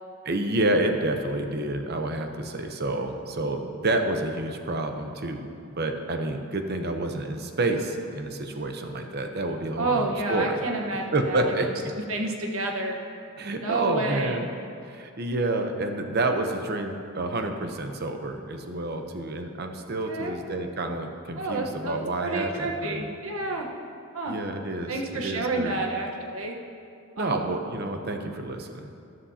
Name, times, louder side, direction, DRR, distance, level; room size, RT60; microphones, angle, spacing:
voice 1, 0.2-5.5 5.8-10.6 11.1-11.7 13.4-14.5 14.9-23.1 24.3-25.9 27.2-28.9, right 2 dB, 45° right, 5 dB, 0.8 m, -29 dB
voice 2, 9.8-11.7 12.1-12.9 13.6-14.4 20.1-20.4 21.4-23.7 24.1-24.4 24.9-26.6 27.2-27.5, right 2 dB, 75° right, 1 dB, 1.2 m, -29 dB
13.0 x 12.5 x 2.8 m, 2.5 s
head